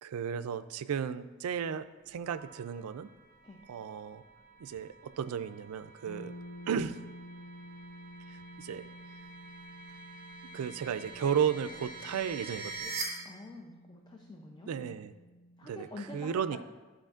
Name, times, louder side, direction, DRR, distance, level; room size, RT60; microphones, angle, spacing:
voice 1, 0.0-3.1 3.7-4.2 4.6-6.3 6.6-7.0 8.3-8.8 10.5-12.9 14.7-15.1 15.6-15.9 16.1-16.6, right 7 dB, 80° right, 13 dB, 0.3 m, -34 dB
sound 1, 2.1-13.0, right 3 dB, 20° right, 2.1 m, -47 dB
sound 2, 6.1-15.8, equal, 80° left, 0.7 m, -51 dB
voice 2, 13.2-15.0 15.6-16.6, left 2 dB, 20° left, 1 dB, 0.5 m, -47 dB
11.5 x 5.0 x 2.4 m, 1.2 s
head